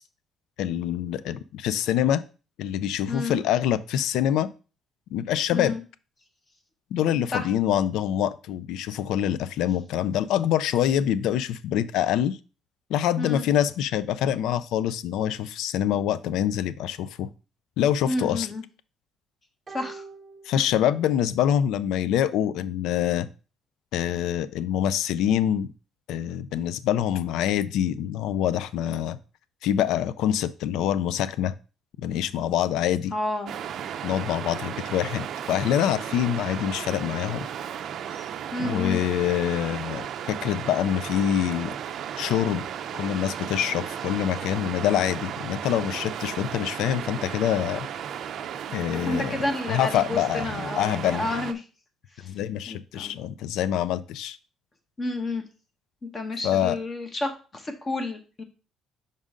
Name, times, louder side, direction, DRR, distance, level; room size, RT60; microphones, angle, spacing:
voice 1, 0.6-2.2 2.6-4.5 5.1-5.7 6.9-12.4 12.9-17.3 17.8-18.5 20.5-23.3 23.9-25.7 26.1-29.2 29.6-31.5 32.0-33.1 34.0-37.5 38.6-41.7 42.2-42.7 43.0-47.9 48.7-49.4 49.7-51.3 52.2-54.4 56.4-56.8, left 10 dB, 85° left, 16 dB, 0.3 m, -25 dB
voice 2, 3.1-3.4 5.5-5.8 7.3-7.5 13.2-13.4 18.1-18.6 19.7-20.0 33.1-33.5 38.1-39.0 48.9-51.6 52.2-52.3 52.7-53.1 55.0-55.4 56.0-58.4, left 2 dB, 30° left, 6 dB, 1.0 m, -30 dB
sound 1, 19.7-21.3 21.6-21.7, right 4 dB, 25° right, 0.9 m, -45 dB
Waves surf, 33.5-51.5, right 9 dB, 60° right, 0.5 m, -35 dB
5.3 x 5.1 x 3.6 m, 0.34 s
cardioid pair, 140°, 0 cm